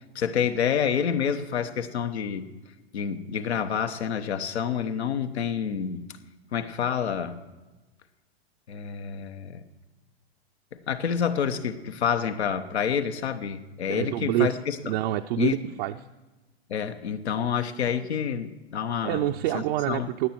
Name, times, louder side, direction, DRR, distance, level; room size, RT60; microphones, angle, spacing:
voice 1, 0.0-2.5 2.9-6.1 6.5-7.4 8.7-9.7 10.7-15.0 15.4-15.6 16.7-20.1, left 7 dB, 85° left, 8 dB, 1.1 m, -28 dB
voice 2, 13.9-14.5 14.8-15.9 19.0-20.3, right 15 dB, 50° right, 5 dB, 0.5 m, -27 dB
16.5 x 10.0 x 4.4 m, 1.2 s
hypercardioid pair, 120°, 32 cm